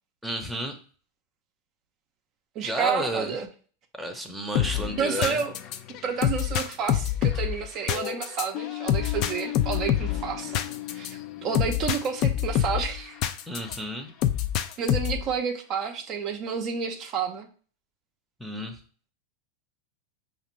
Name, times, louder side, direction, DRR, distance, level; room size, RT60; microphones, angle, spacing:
voice 1, 0.2-0.7 2.6-3.4 4.0-5.4 13.5-14.1 18.4-18.8, equal, ahead, 4 dB, 0.7 m, -31 dB
voice 2, 2.6-3.5 5.0-5.5 6.0-10.6 10.9-13.2 14.8-17.5, right 6 dB, 45° right, 4 dB, 0.6 m, -30 dB
sound 1, 4.5-13.8 14.2-15.3, left 11 dB, 45° left, 0.4 m, -27 dB
5.0 x 2.5 x 3.0 m, 0.41 s
hypercardioid pair, 115°, 0 cm